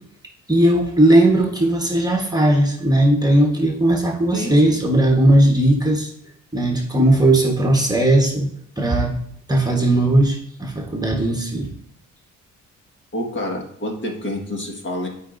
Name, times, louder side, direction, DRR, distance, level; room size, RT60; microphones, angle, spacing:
voice 1, 0.5-6.1 6.5-8.5 8.8-9.1 9.5-11.7, right 1 dB, 15° right, 0 dB, 1.2 m, -17 dB
voice 2, 4.3-4.7 13.1-15.1, left 1 dB, 40° left, 1 dB, 1.7 m, -28 dB
12.0 x 4.8 x 2.6 m, 0.68 s
cardioid pair, 90°, 30 cm